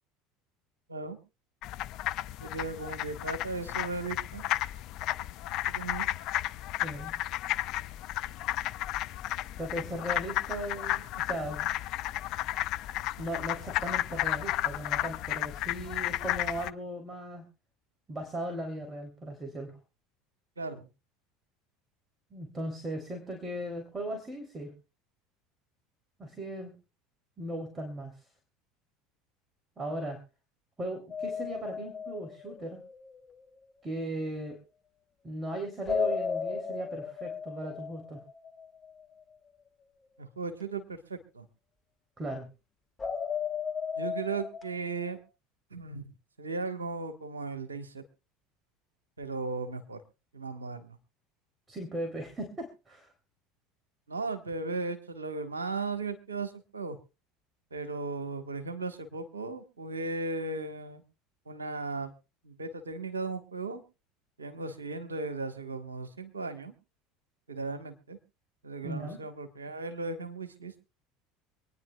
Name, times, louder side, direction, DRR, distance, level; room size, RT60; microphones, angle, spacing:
sound 1, 1.6-16.7, left 14 dB, 55° left, 0.5 m, -33 dB
voice 1, 2.4-4.4 5.7-6.1 20.6-20.9 40.2-41.4 44.0-45.2 45.7-46.0 46.4-48.0 49.2-50.0 50.3-51.0 54.1-57.0 57.7-61.0 61.5-62.1 62.4-63.8 64.4-66.7 67.5-68.2 68.6-70.7, right 3 dB, 85° right, 7 dB, 1.3 m, -36 dB
voice 2, 6.8-7.1 9.6-11.7 13.2-17.4 18.1-19.8 22.3-24.7 26.2-26.7 27.4-28.1 29.8-30.2 30.8-32.8 33.8-34.6 35.2-38.2 42.2-42.5 51.7-53.1 68.8-69.2, right 1 dB, 20° right, 4 dB, 2.9 m, -37 dB
sound 2, 31.1-33.2 35.9-38.7 43.0-45.2, left 6 dB, 25° left, 1.7 m, -35 dB
26.0 x 9.8 x 2.3 m, 0.30 s
figure-of-eight pair, 70°, 0 cm